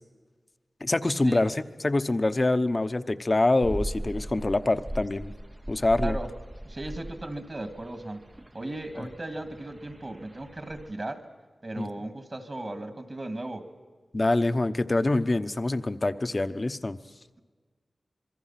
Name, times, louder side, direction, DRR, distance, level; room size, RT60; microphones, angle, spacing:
voice 1, 0.8-1.6 1.8-5.3 5.7-6.2 9.0-9.1 11.8-11.9 14.1-17.0, left 2 dB, 35° left, 11 dB, 0.9 m, -25 dB
sound 1, 3.6-10.9, right 1 dB, 20° right, 0.8 m, -38 dB
voice 2, 6.6-8.2 8.5-11.3 11.6-13.7, right 2 dB, 45° right, 7 dB, 2.3 m, -36 dB
26.5 x 22.5 x 5.9 m, 1.5 s
wide cardioid pair, 70°, 0 cm